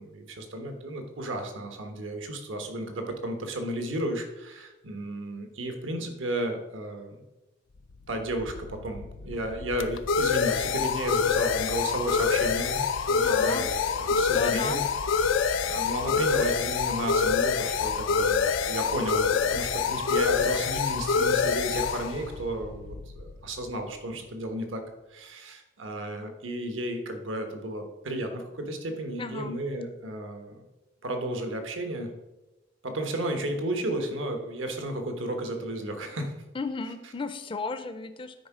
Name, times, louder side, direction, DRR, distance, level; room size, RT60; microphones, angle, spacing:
voice 1, 0.0-7.2 8.1-14.8 15.2-24.8 25.1-30.6 31.0-32.1 32.8-36.4, right 1 dB, 80° right, 5 dB, 1.2 m, -33 dB
sound 1, 8.2-23.6, left 6 dB, 85° left, 0.5 m, -26 dB
voice 2, 13.2-13.7 14.1-14.8 29.2-29.6 36.5-38.3, left 4 dB, 25° left, 9 dB, 0.4 m, -34 dB
9.6 x 4.5 x 4.9 m, 1.0 s
head